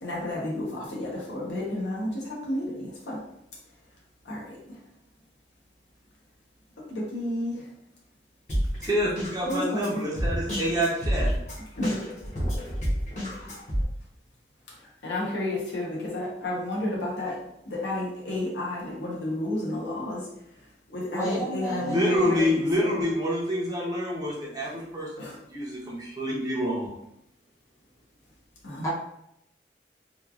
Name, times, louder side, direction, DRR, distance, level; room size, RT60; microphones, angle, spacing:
voice 1, 0.0-3.2 4.3-4.6 6.9-7.6 9.5-10.0 11.8-12.0 15.0-17.4 17.7-20.2 20.9-22.5 22.8-23.0 25.2-25.4 28.6-28.9, left 1 dB, 70° left, -4 dB, 0.8 m, -31 dB
Drum kit, 8.5-13.8, equal, 40° left, 0.9 m, -29 dB
voice 2, 8.8-11.3 21.7-26.9, equal, 20° right, -4 dB, 0.6 m, -27 dB
voice 3, 21.1-22.3 28.8-28.9, right 1 dB, 20° left, -5 dB, 0.6 m, -31 dB
3.0 x 2.3 x 2.3 m, 0.78 s
head